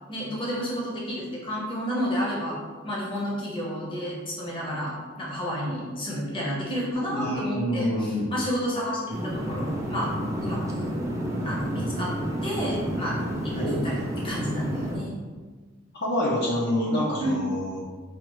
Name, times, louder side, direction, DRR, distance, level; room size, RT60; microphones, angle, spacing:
voice 1, 0.1-2.6 2.8-10.1 10.4-10.9 11.4-12.1 12.4-13.2 13.4-15.2 17.2-17.4, equal, 25° left, -5 dB, 0.9 m, -30 dB
voice 2, 7.1-8.3 13.6-13.8 16.0-17.8, left 1 dB, 55° left, -5 dB, 0.7 m, -27 dB
sound 1, 9.1-15.0, equal, 15° right, 0.5 m, -30 dB
4.8 x 2.4 x 3.1 m, 1.4 s
head